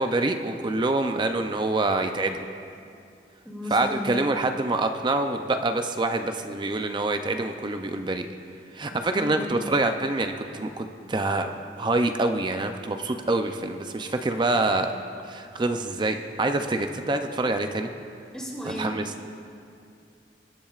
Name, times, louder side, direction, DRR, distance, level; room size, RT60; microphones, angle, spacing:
voice 1, 0.0-2.5 3.7-8.3 8.7-11.5 11.8-14.9 15.2-17.9 18.8-19.0, right 2 dB, 25° right, 6 dB, 0.5 m, -26 dB
voice 2, 3.4-4.0 9.1-9.5 18.3-18.9, equal, 5° left, -5 dB, 2.7 m, -34 dB
24.5 x 10.0 x 2.4 m, 2.5 s
head